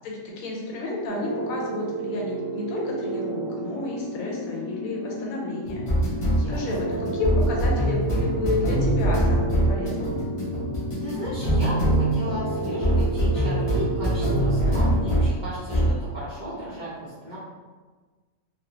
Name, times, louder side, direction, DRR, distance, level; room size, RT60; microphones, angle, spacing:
voice 1, 0.0-5.8 6.5-10.2, left 2 dB, 90° left, -2 dB, 1.1 m, -31 dB
sound 1, 1.1-15.4 15.7-16.0, right 1 dB, 40° left, 0.5 m, -25 dB
voice 2, 6.3-7.0 11.0-17.4, equal, 60° right, -10 dB, 0.5 m, -35 dB
2.3 x 2.1 x 2.8 m, 1.4 s
omnidirectional pair, 1.4 m